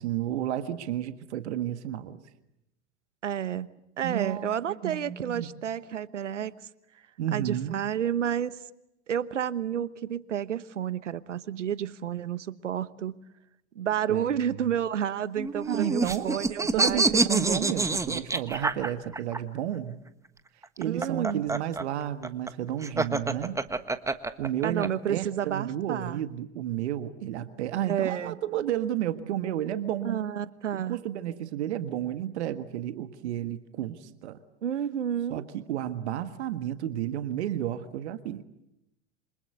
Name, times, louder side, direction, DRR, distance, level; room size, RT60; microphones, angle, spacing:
voice 1, 0.0-2.2 4.0-5.5 7.2-7.7 14.1-14.2 15.7-20.0 20.8-23.6 24.4-30.2 30.7-34.4 35.3-38.4, right 11 dB, 65° right, 11 dB, 1.7 m, -32 dB
voice 2, 3.2-3.7 4.0-6.5 7.3-8.6 9.1-13.2 13.7-17.2 20.8-21.5 24.6-26.2 27.9-28.4 30.0-31.0 34.6-35.5, right 9 dB, 80° right, 17 dB, 1.2 m, -30 dB
sound 1, 15.4-19.4 20.6-24.9, right 3 dB, 10° right, 1.3 m, -27 dB
28.0 x 26.0 x 8.1 m, 0.86 s
hypercardioid pair, 90°, 36 cm